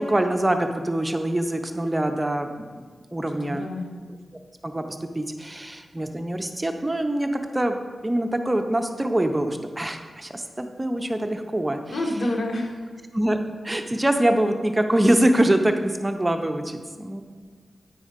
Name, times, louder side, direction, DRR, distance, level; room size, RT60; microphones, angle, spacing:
voice 1, 0.0-2.6 3.1-3.6 4.6-7.3 7.5-12.0 13.1-13.4 13.6-17.2, right 1 dB, 15° right, 6 dB, 0.6 m, -24 dB
voice 2, 3.4-3.9 11.9-12.9, left 1 dB, 85° left, 0 dB, 1.3 m, -28 dB
9.2 x 4.2 x 5.0 m, 1.6 s
wide cardioid pair, 115°, 0 cm